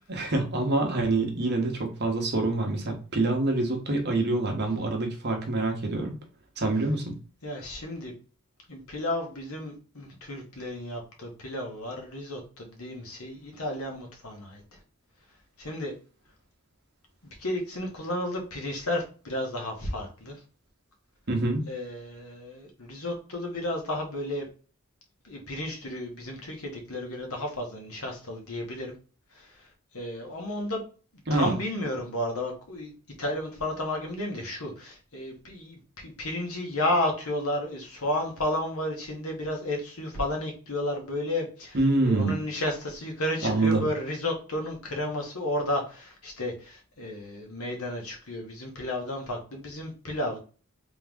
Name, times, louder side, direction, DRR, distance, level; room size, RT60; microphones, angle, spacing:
voice 1, 0.1-6.2 6.6-7.2 21.3-21.6 31.3-31.5 41.7-42.4 43.4-43.9, right 2 dB, 50° right, 3 dB, 1.1 m, -26 dB
voice 2, 7.4-8.1 8.7-14.6 15.6-15.9 17.2-20.4 21.7-24.4 25.2-28.9 29.3-29.7 29.9-30.8 31.3-32.9 33.2-41.8 42.0-50.4, left 1 dB, 75° left, 1 dB, 1.4 m, -32 dB
3.5 x 3.1 x 3.5 m, 0.36 s
head